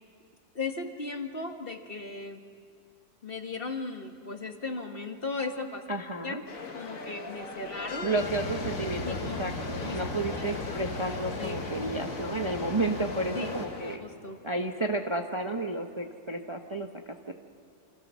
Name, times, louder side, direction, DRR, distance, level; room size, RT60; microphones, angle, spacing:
voice 1, 0.6-2.4 3.2-5.8 6.2-6.4 6.7-8.1 9.0-9.4 9.8-10.0 10.4-10.5 11.4-11.6 13.3-13.5 14.0-14.4, left 3 dB, 35° left, 5 dB, 1.7 m, -36 dB
voice 2, 5.9-6.4 8.0-14.0 14.4-16.9 17.3-17.4, right 2 dB, 20° right, 4 dB, 0.9 m, -32 dB
sound 1, 6.5-14.0, left 3 dB, 60° left, 2.1 m, -41 dB
sound 2, 8.1-13.6, left 2 dB, 80° left, 3.3 m, -36 dB
28.0 x 27.0 x 6.3 m, 2.4 s
omnidirectional pair, 1.7 m